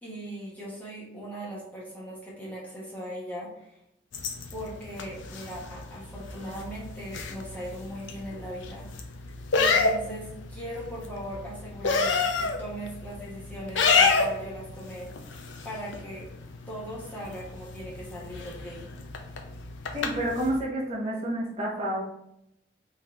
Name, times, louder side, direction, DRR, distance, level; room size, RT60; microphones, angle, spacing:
voice 1, 0.0-3.8 4.5-8.9 9.5-16.3 16.7-18.8, equal, 10° left, -7 dB, 1.3 m, -39 dB
sound 1, 4.1-20.6, left 4 dB, 85° left, 0.5 m, -30 dB
voice 2, 19.9-22.0, right 1 dB, 35° right, -5 dB, 1.2 m, -29 dB
3.8 x 3.2 x 3.7 m, 0.80 s
head